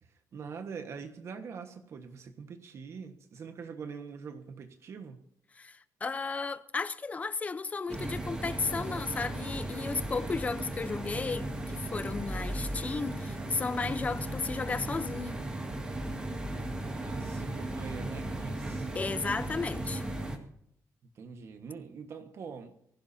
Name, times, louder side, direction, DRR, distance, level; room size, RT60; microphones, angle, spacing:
voice 1, 0.0-5.2 16.8-18.9 21.0-22.7, right 5 dB, 45° right, 1.5 m, -44 dB
voice 2, 5.6-15.4 18.9-20.0, left 4 dB, 25° left, 0.7 m, -34 dB
sound 1, 7.9-20.4, right 1 dB, 15° right, 2.2 m, -36 dB
24.0 x 16.0 x 2.8 m
cardioid pair, 170°, 6 cm